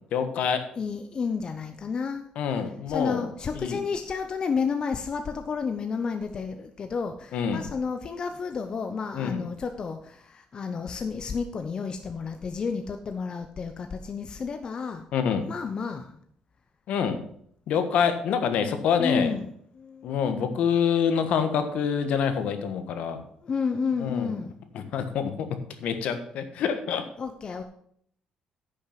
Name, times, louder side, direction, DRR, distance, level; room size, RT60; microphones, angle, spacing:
voice 1, 0.1-0.7 2.4-3.3 3.5-3.8 7.3-7.6 9.2-9.4 15.1-15.5 16.9-17.2 17.7-19.3 20.0-23.2 24.0-24.3 24.7-27.1, left 7 dB, 75° left, 8 dB, 1.4 m, -26 dB
voice 2, 0.8-2.3 2.9-15.0 15.5-16.2 19.0-20.2 23.4-24.6 27.2-27.6, left 5 dB, 40° left, 7 dB, 0.8 m, -31 dB
10.5 x 6.5 x 5.8 m, 0.66 s
cardioid pair, 120°, 2 cm